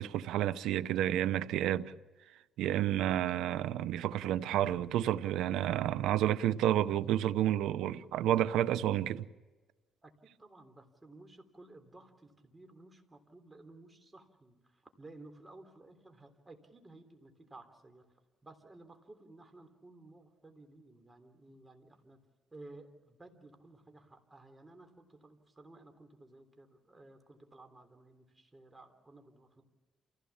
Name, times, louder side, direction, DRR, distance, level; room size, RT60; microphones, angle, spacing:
voice 1, 0.0-1.9 2.6-9.3, right 12 dB, 90° right, 0.8 m, -30 dB
voice 2, 10.0-18.1 18.4-22.2 22.5-29.6, right 2 dB, 20° right, 3.6 m, -55 dB
28.5 x 16.5 x 7.3 m
cardioid pair, 90°, 0 cm